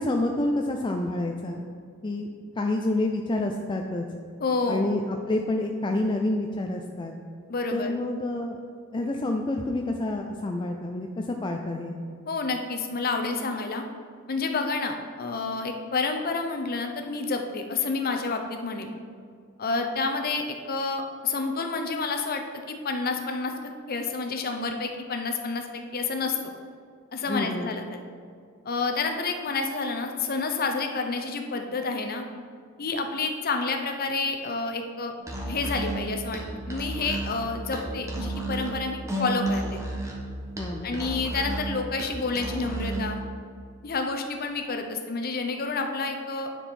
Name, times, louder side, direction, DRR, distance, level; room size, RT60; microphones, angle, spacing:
voice 1, 0.0-1.7 2.0-4.0 4.7-7.1 7.7-8.6 8.9-11.9 27.3-27.7 40.6-41.0, left 2 dB, 25° left, 3 dB, 0.4 m, -28 dB
voice 2, 4.4-4.9 7.5-7.9 12.3-13.8 14.3-18.9 19.6-23.5 23.9-26.4 27.1-28.0 28.6-32.2 32.8-35.1 35.5-36.4 36.7-39.8 40.8-43.2 43.8-46.5, left 4 dB, 45° left, 5 dB, 0.7 m, -29 dB
Musical instrument, 35.2-43.2, right 2 dB, 15° right, 1.1 m, -32 dB
9.8 x 4.6 x 4.3 m, 2.2 s
head